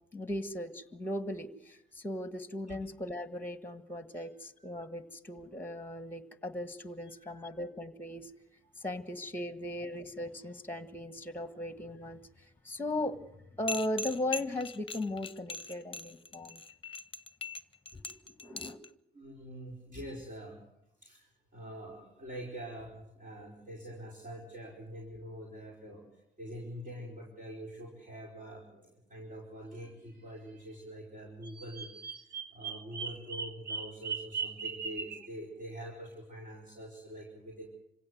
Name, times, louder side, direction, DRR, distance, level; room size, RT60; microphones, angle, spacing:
voice 1, 0.1-8.3 8.8-13.2 13.6-16.6 17.9-18.8, left 1 dB, 10° left, 11 dB, 1.6 m, -38 dB
voice 2, 7.0-7.6 8.8-9.0 11.5-11.6 19.1-20.6 21.0-37.7, right 1 dB, 40° right, -1 dB, 5.0 m, -45 dB
sound 1, 13.7-18.9, left 3 dB, 25° left, 0.9 m, -40 dB
Bird vocalization bird call bird song, 31.4-35.3, right 5 dB, 60° right, 2.0 m, -38 dB
26.0 x 16.5 x 8.0 m, 0.81 s
cardioid pair, 90°, 20 cm